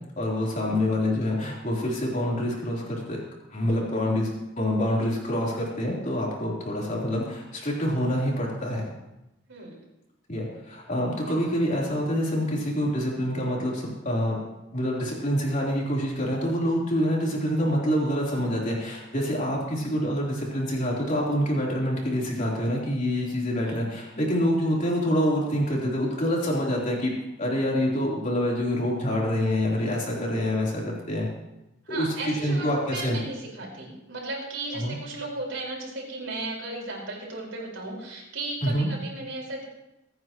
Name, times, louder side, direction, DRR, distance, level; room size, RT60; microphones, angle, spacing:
voice 1, 0.2-3.2 3.5-8.8 10.3-14.4 14.7-27.1 27.4-31.3 31.9-33.2 34.7-35.0 38.6-38.9, equal, 40° left, -3 dB, 3.6 m, -26 dB
voice 2, 11.2-11.5 23.6-23.9 31.9-39.6, right 2 dB, 70° right, -2 dB, 4.8 m, -35 dB
24.0 x 9.5 x 3.0 m, 0.92 s
head